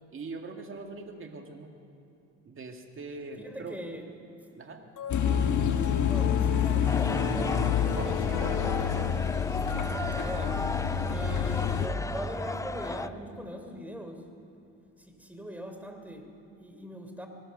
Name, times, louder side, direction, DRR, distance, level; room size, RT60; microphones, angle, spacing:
voice 1, 0.1-1.7 2.4-3.8 4.6-4.8 7.9-9.2, right 3 dB, 45° right, 3 dB, 2.2 m, -42 dB
voice 2, 3.4-4.0 6.1-7.4 10.2-10.7 11.1-14.2 15.0-17.3, right 1 dB, 5° right, 5 dB, 3.5 m, -41 dB
sound 1, 5.0-9.6, left 7 dB, 85° left, 2.3 m, -37 dB
sound 2, 5.1-11.9, left 7 dB, 70° left, 1.8 m, -28 dB
sound 3, 6.9-13.1, left 3 dB, 10° left, 0.4 m, -35 dB
24.0 x 19.0 x 6.7 m, 2.8 s
cardioid pair, 90°, 30 cm